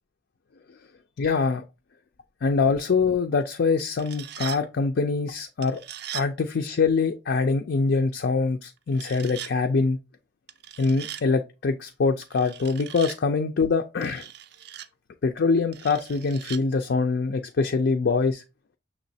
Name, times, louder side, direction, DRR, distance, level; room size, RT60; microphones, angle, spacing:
voice 1, 1.2-1.6 2.4-5.8 6.1-10.0 10.8-14.3 15.2-18.4, left 4 dB, 55° left, 0.4 m, -24 dB
sound 1, 3.8-4.6 5.6-6.3 8.9-9.5 10.5-11.2 12.2-13.2 14.0-14.9 15.7-16.6, right 11 dB, 55° right, 0.4 m, -39 dB
6.3 x 3.0 x 2.7 m
head